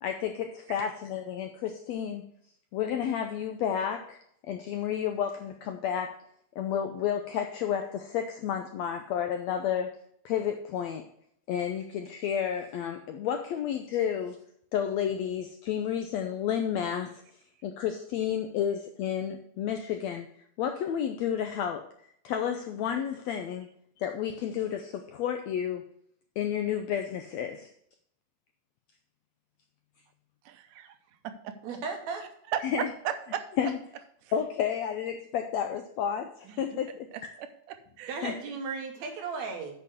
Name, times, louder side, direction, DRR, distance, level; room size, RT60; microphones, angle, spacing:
voice 1, 0.0-2.3 2.7-4.2 4.4-6.2 6.6-9.9 10.2-11.0 11.5-14.4 14.7-17.2 17.6-20.3 20.6-21.8 22.2-23.7 24.0-25.8 26.4-27.7 32.7-32.9 33.6-33.8 34.3-37.1 38.2-38.3, left 9 dB, 85° left, 6 dB, 1.6 m, -31 dB
voice 2, 30.5-31.0 31.2-31.6 32.5-33.7 34.2-34.3 36.5-36.8 37.1-38.2, right 9 dB, 80° right, 8 dB, 2.3 m, -36 dB
voice 3, 31.6-32.2 38.1-39.7, right 4 dB, 60° right, 2 dB, 2.7 m, -35 dB
8.4 x 5.6 x 6.4 m, 0.69 s
omnidirectional pair, 3.8 m